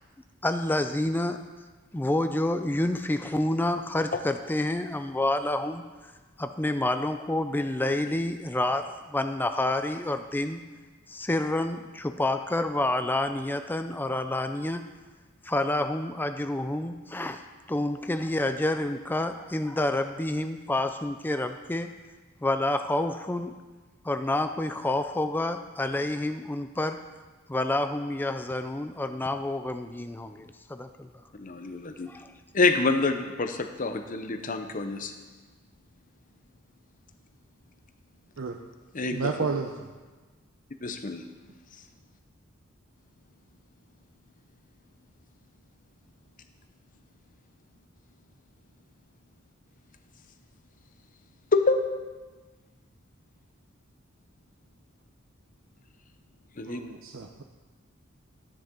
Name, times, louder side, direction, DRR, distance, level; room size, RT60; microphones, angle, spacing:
voice 1, 0.4-1.4 1.9-6.1 6.4-10.6 11.1-14.8 15.4-17.4 17.7-21.9 22.4-23.5 24.0-27.0 27.5-31.1 32.1-32.3, left 1 dB, 10° left, 8 dB, 0.4 m, -28 dB
voice 2, 31.4-32.1 32.5-35.1 38.9-39.3 40.8-41.2 51.5-52.2 56.6-56.8, left 3 dB, 40° left, 7 dB, 0.8 m, -27 dB
voice 3, 39.1-39.7 56.7-57.4, right 4 dB, 75° right, 3 dB, 0.7 m, -31 dB
13.0 x 10.0 x 3.8 m, 1.3 s
head